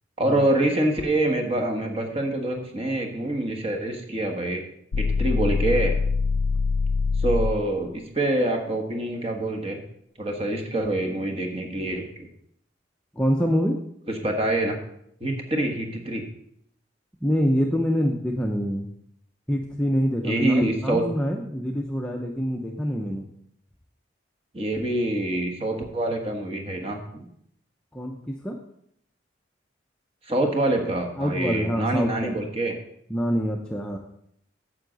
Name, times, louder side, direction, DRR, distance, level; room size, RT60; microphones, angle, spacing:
voice 1, 0.2-4.6 5.0-5.9 7.2-9.8 10.2-12.3 14.2-14.7 15.2-16.2 20.2-21.0 24.5-27.2 30.2-32.7, right 1 dB, 30° right, 2 dB, 1.3 m, -25 dB
sound 1, 4.9-7.7, left 4 dB, 70° left, 0.4 m, -24 dB
voice 2, 13.1-13.8 17.2-18.9 19.5-23.3 27.9-28.6 31.2-32.4 33.1-34.0, equal, 5° left, 0 dB, 0.6 m, -25 dB
9.4 x 7.6 x 4.0 m, 0.71 s
head